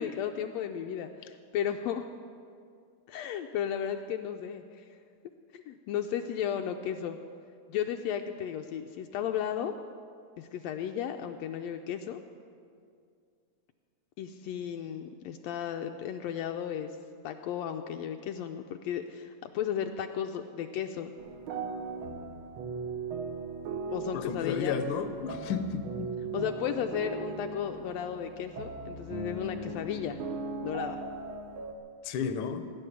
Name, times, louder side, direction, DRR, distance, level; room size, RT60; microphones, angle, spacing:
voice 1, 0.0-2.0 3.1-4.9 5.5-7.2 7.7-9.7 10.4-12.2 14.2-17.0 17.2-21.1 23.9-24.8 26.3-30.2 30.6-31.0, left 9 dB, 90° left, 5 dB, 1.5 m, -34 dB
sound 1, 21.2-31.7, right 4 dB, 70° right, 1.2 m, -38 dB
voice 2, 24.1-26.1 32.0-32.7, left 6 dB, 75° left, 8 dB, 1.3 m, -32 dB
17.0 x 10.0 x 6.9 m, 2.3 s
omnidirectional pair, 3.6 m